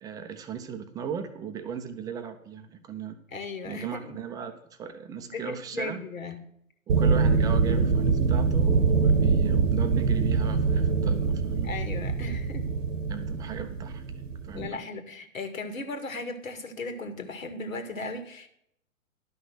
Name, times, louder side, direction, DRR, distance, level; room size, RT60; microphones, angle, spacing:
voice 1, 0.0-3.2 3.6-6.0 6.9-11.8 13.1-14.8, right 7 dB, 10° right, 7 dB, 0.6 m, -37 dB
voice 2, 3.3-4.2 5.2-6.4 11.6-12.7 14.5-18.5, left 3 dB, 75° left, 7 dB, 2.2 m, -37 dB
sound 1, 6.9-14.7, right 5 dB, 65° right, 1.1 m, -24 dB
11.5 x 5.8 x 7.6 m, 0.73 s
hypercardioid pair, 130°, 41 cm